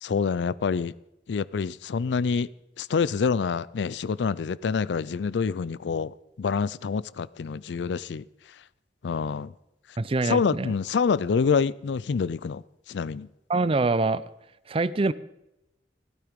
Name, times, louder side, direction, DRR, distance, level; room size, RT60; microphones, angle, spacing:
voice 1, 0.0-0.9 1.3-2.5 2.8-8.3 9.0-9.5 10.2-13.3, left 5 dB, 80° left, 0.4 m, -27 dB
voice 2, 10.0-10.7 13.5-14.2 14.7-15.1, right 3 dB, 30° right, 0.5 m, -24 dB
16.0 x 12.0 x 5.1 m
head